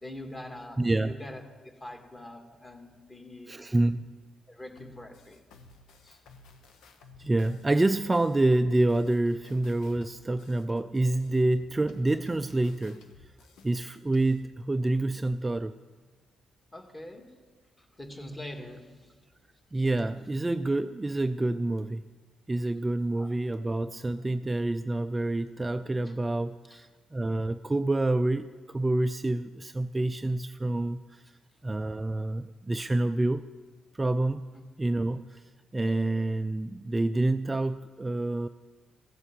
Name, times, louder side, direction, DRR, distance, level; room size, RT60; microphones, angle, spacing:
voice 1, 0.0-3.8 4.5-5.4 6.0-6.2 16.7-17.4 17.8-19.2 23.2-23.3 26.0-26.1 26.7-26.8 34.5-34.6, left 1 dB, 20° left, 4 dB, 2.0 m, -44 dB
voice 2, 0.8-1.2 3.5-4.1 7.2-13.0 13.6-15.8 19.7-22.0 22.5-31.2 31.6-33.5 33.9-34.4 34.8-35.4 35.7-38.5, right 2 dB, 20° right, 10 dB, 0.4 m, -27 dB
sound 1, 4.8-14.4, left 4 dB, 85° left, 1.2 m, -54 dB
15.5 x 8.2 x 7.5 m, 1.4 s
cardioid pair, 90°, 0 cm